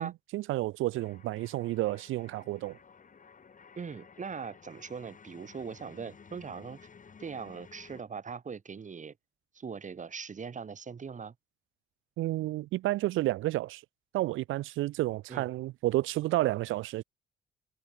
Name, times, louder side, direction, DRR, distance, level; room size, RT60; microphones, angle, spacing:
voice 1, 0.0-2.8 12.2-13.8 14.1-17.0, right 17 dB, 90° right, 0.9 m, -31 dB
sound 1, 0.9-8.0, left 6 dB, 40° left, 7.8 m, -55 dB
voice 2, 3.8-6.8 7.2-9.1 9.5-11.3 15.3-15.5, right 6 dB, 40° right, 2.8 m, -40 dB
cardioid pair, 90°, 20 cm